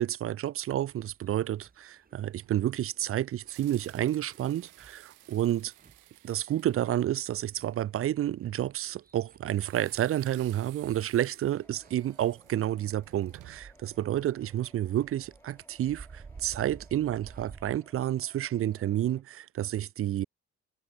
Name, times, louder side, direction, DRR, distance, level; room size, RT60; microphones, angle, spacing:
voice 1, 0.0-5.7 6.2-20.3, right 12 dB, 45° right, 0.5 m, -30 dB
sound 1, 0.9-17.8, right 5 dB, 30° right, 2.5 m, -55 dB
sound 2, 2.4-7.7 9.5-13.8, right 16 dB, 85° right, 1.9 m, -56 dB
sound 3, 11.6-19.2, left 1 dB, 10° left, 3.8 m, -62 dB
cardioid pair, 90°, 30 cm